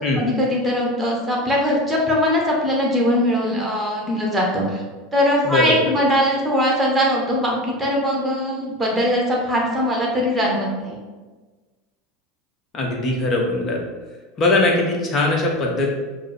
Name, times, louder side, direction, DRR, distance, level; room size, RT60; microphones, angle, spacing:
voice 1, 0.2-4.8 5.1-11.0, equal, 10° right, -2 dB, 1.1 m, -21 dB
voice 2, 5.4-5.9 12.7-13.8 14.4-15.9, left 2 dB, 30° left, -1 dB, 0.9 m, -20 dB
4.9 x 2.1 x 4.2 m, 1.3 s
figure-of-eight pair, 80°, 0 cm